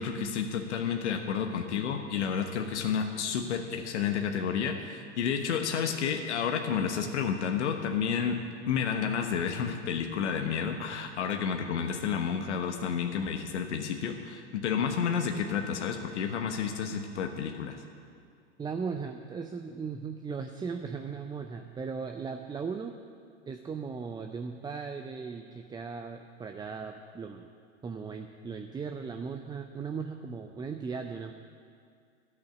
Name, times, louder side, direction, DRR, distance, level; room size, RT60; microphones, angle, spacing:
voice 1, 0.0-8.4 8.7-17.8, left 7 dB, 75° left, 4 dB, 1.2 m, -30 dB
voice 2, 18.6-23.0 23.5-27.5 27.8-31.3, right 5 dB, 10° right, 5 dB, 0.5 m, -37 dB
10.5 x 8.4 x 8.5 m, 2.3 s
hypercardioid pair, 95°, 35 cm